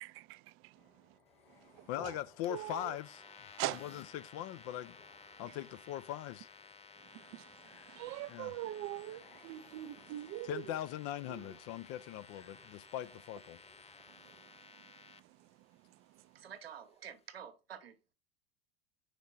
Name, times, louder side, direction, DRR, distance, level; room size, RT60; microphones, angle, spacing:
voice 1, 0.0-0.4 2.5-2.7 3.6-3.8 7.9-10.5, right 16 dB, 50° right, 0.4 m, -40 dB
sound 1, 0.7-14.7, left 3 dB, 80° left, 2.4 m, -62 dB
voice 2, 1.9-3.2 3.7-5.0 5.4-6.5 8.3-8.5 10.4-13.6, left 12 dB, 55° left, 0.6 m, -41 dB
sound 2, 2.4-15.2, left 5 dB, 20° left, 0.8 m, -56 dB
voice 3, 16.3-18.1, right 8 dB, 85° right, 1.1 m, -49 dB
5.1 x 4.5 x 6.1 m
hypercardioid pair, 80°, 29 cm